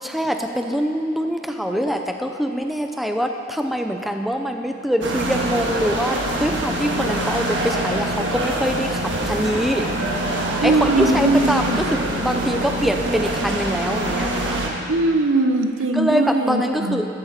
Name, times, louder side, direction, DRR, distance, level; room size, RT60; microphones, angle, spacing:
voice 1, 0.0-9.9 10.6-14.6 15.9-17.1, equal, ahead, 4 dB, 0.5 m, -24 dB
sound 1, 5.0-14.7, right 1 dB, 65° right, 1.6 m, -24 dB
voice 2, 10.6-11.8 14.9-17.0, right 2 dB, 80° right, 6 dB, 0.8 m, -20 dB
14.5 x 12.5 x 4.3 m, 2.6 s
head